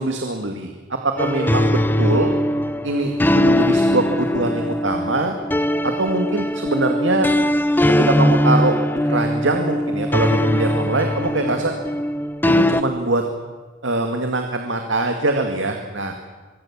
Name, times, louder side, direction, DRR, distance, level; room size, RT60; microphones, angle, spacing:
voice 1, 0.0-2.3 2.8-5.3 5.8-7.3 8.0-8.8 9.0-11.7 12.5-13.2 13.8-16.2, right 2 dB, 70° right, 4 dB, 2.2 m, -23 dB
sound 1, 1.2-12.8, left 1 dB, 10° left, 0.7 m, -20 dB
25.0 x 23.0 x 7.5 m, 1.3 s
head